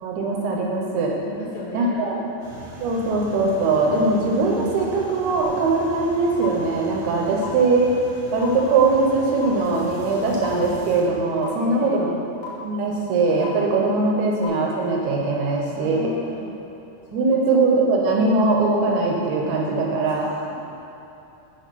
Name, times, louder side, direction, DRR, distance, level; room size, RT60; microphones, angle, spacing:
voice 1, 0.0-1.2 1.7-2.2 2.8-7.9 8.3-12.1 12.6-16.1 17.1-20.3, right 3 dB, 75° right, -1 dB, 2.6 m, -21 dB
voice 2, 1.2-2.2 11.5-12.0 15.7-16.6 17.1-17.4 20.1-20.5, left 1 dB, 75° left, -4 dB, 2.2 m, -36 dB
sound 1, 2.4-11.0, right 1 dB, 55° right, 2.6 m, -40 dB
sound 2, 5.4-5.5 6.4-6.5 7.4-7.5 8.4-8.5 9.4-9.5 10.4-10.5 11.4-11.5 12.4-12.5 13.4-13.5 14.4-14.5, left 10 dB, 55° left, 1.5 m, -33 dB
7.2 x 5.5 x 5.7 m, 2.8 s
omnidirectional pair, 4.8 m